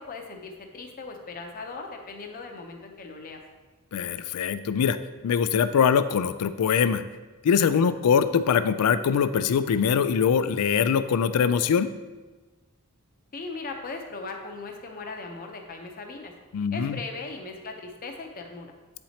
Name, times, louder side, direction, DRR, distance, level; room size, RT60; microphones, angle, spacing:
voice 1, 0.0-3.4 13.3-16.3 16.7-18.7, left 3 dB, 40° left, 2 dB, 0.7 m, -38 dB
voice 2, 3.9-5.0 5.2-7.0 7.4-11.9 16.5-17.0, left 7 dB, 85° left, 12 dB, 0.4 m, -23 dB
8.8 x 4.4 x 2.8 m, 1.3 s
head